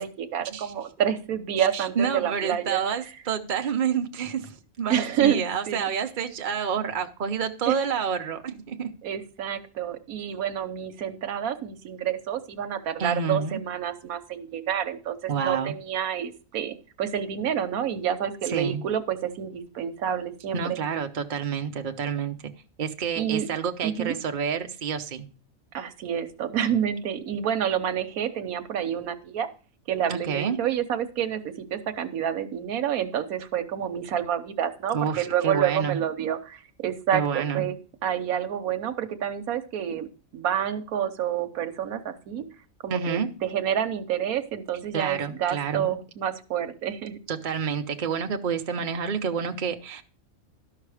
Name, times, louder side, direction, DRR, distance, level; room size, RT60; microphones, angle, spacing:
voice 1, 0.0-2.8 4.9-5.9 7.7-7.8 9.0-20.8 23.2-23.5 23.8-24.2 25.7-29.5 29.9-37.8 38.0-40.1 40.3-42.4 42.8-47.2, right 9 dB, 85° right, 9 dB, 1.3 m, -28 dB
voice 2, 1.6-8.9 13.0-13.6 15.3-15.7 18.5-18.8 20.5-22.4 22.8-25.3 30.1-30.6 34.9-36.0 37.1-37.7 42.9-43.3 44.9-45.9 47.3-50.0, right 7 dB, 40° right, 5 dB, 0.9 m, -29 dB
12.5 x 5.8 x 4.8 m, 0.37 s
omnidirectional pair, 1.5 m